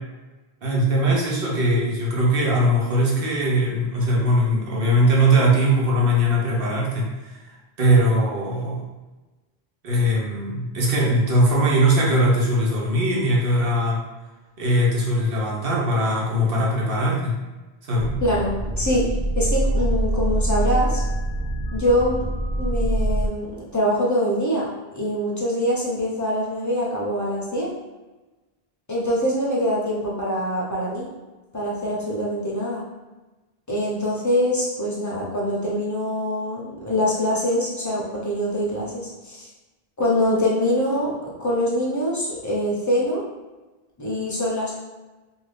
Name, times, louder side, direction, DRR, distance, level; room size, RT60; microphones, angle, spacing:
voice 1, 0.6-7.4 7.8-8.8 9.8-14.0 14.6-17.3 17.9-18.1, right 1 dB, 65° right, -3 dB, 1.0 m, -20 dB
sound 1, 18.0-23.3, right 1 dB, 45° right, 0.3 m, -24 dB
voice 2, 18.2-19.0 19.4-21.0 21.7-22.3 22.6-27.7 28.9-31.1 31.5-32.8 33.7-39.5 40.0-43.2 44.0-44.7, equal, 20° left, -5 dB, 0.6 m, -24 dB
2.6 x 2.5 x 3.2 m, 1.2 s
omnidirectional pair, 1.0 m